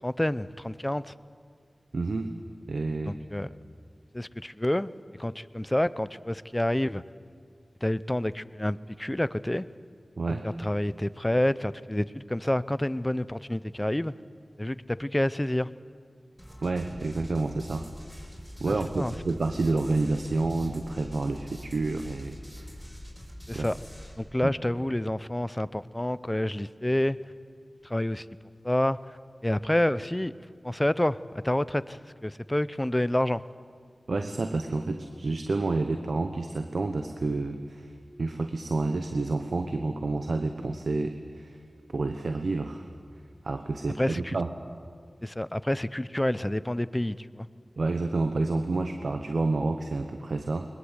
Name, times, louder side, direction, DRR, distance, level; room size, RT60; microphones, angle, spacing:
voice 1, 0.0-1.1 3.1-3.5 4.1-4.9 5.2-7.0 7.8-9.7 10.4-14.1 14.6-15.7 18.7-19.1 23.5-23.8 24.2-27.2 27.8-28.3 28.6-29.2 29.4-30.3 30.6-31.2 31.4-33.4 44.0-44.4 45.2-47.5, left 1 dB, 15° left, 16 dB, 0.6 m, -28 dB
voice 2, 1.9-2.3 2.7-3.1 10.2-10.4 16.6-17.8 18.6-22.7 23.5-23.7 24.4-24.5 34.1-37.9 38.2-41.6 41.9-42.9 43.4-44.5 47.8-50.7, right 3 dB, 80° right, 7 dB, 1.1 m, -29 dB
sound 1, 16.4-24.1, equal, ahead, 5.3 m, -44 dB
21.5 x 20.5 x 8.1 m, 2.1 s
wide cardioid pair, 60°, 0 cm